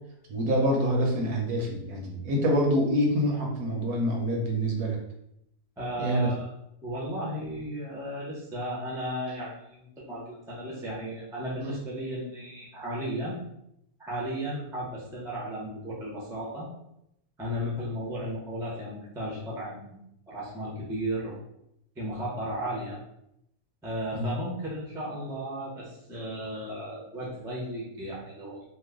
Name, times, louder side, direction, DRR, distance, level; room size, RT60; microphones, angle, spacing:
voice 1, 0.3-5.0 6.0-6.3 24.1-24.3, equal, 70° right, 0 dB, 1.1 m, -26 dB
voice 2, 5.8-6.5 6.8-13.3 14.0-16.7 17.4-20.0 20.3-21.4 22.0-23.0 23.8-28.6, equal, 5° right, -5 dB, 0.3 m, -35 dB
3.0 x 2.1 x 3.6 m, 0.78 s
omnidirectional pair, 1.7 m